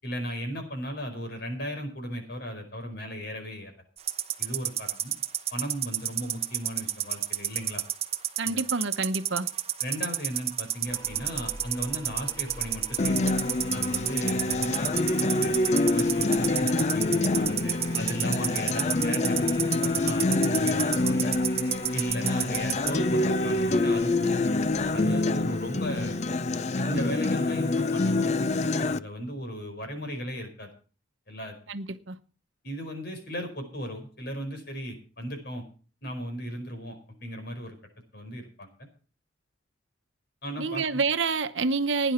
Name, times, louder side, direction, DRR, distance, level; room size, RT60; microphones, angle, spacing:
voice 1, 0.0-3.7 4.4-5.1 5.5-7.8 8.4-8.6 9.8-13.3 13.7-15.5 15.9-21.3 21.9-26.2 26.7-30.7 31.3-31.5 32.6-35.6 36.0-37.8 38.1-38.7 40.4-41.0, equal, 55° left, 5.0 m, -36 dB
sound 1, 4.0-22.9, right 11 dB, 30° right, 0.9 m, -29 dB
voice 2, 8.4-9.5 31.7-32.2 40.6-42.1, right 4 dB, 70° right, 1.0 m, -28 dB
sound 2, 10.9-26.8, right 1 dB, 15° left, 2.2 m, -45 dB
Acoustic guitar, 13.0-29.0, left 2 dB, 35° left, 0.5 m, -26 dB
16.5 x 10.0 x 4.4 m
head